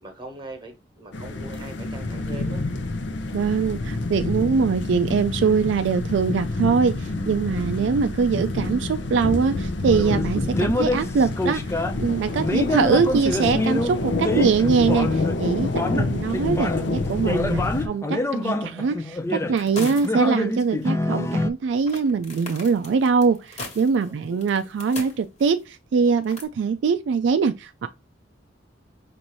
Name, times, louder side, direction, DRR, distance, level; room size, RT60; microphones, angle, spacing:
voice 1, 0.0-2.6 12.4-12.8 24.1-24.4, right 1 dB, 25° right, 1.2 m, -41 dB
sound 1, 1.1-17.9, left 2 dB, 65° left, 0.6 m, -28 dB
voice 2, 3.3-27.9, right 5 dB, 70° right, 0.3 m, -23 dB
sound 2, 9.8-12.0 12.4-15.4 15.7-21.5, left 2 dB, 15° left, 0.3 m, -26 dB
sound 3, 19.6-20.3 20.6-20.7 21.9-25.6 26.2-26.4, left 2 dB, 40° left, 1.3 m, -38 dB
5.3 x 2.5 x 3.0 m
head